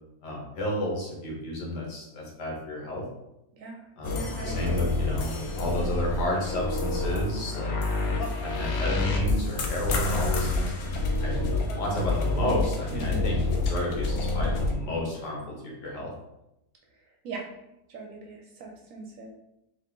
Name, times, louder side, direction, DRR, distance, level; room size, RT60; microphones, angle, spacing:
voice 1, 0.2-3.1 4.0-10.7 11.2-11.4 11.7-13.4 13.7-16.1, left 1 dB, 85° left, -2 dB, 1.8 m, -32 dB
voice 2, 3.5-4.9 12.9-13.3 17.2-17.5 17.9-19.3, right 3 dB, 60° right, 1 dB, 0.9 m, -40 dB
sound 1, 4.0-14.7, left 2 dB, 70° left, 1.0 m, -28 dB
3.9 x 3.2 x 3.7 m, 0.89 s
omnidirectional pair, 1.8 m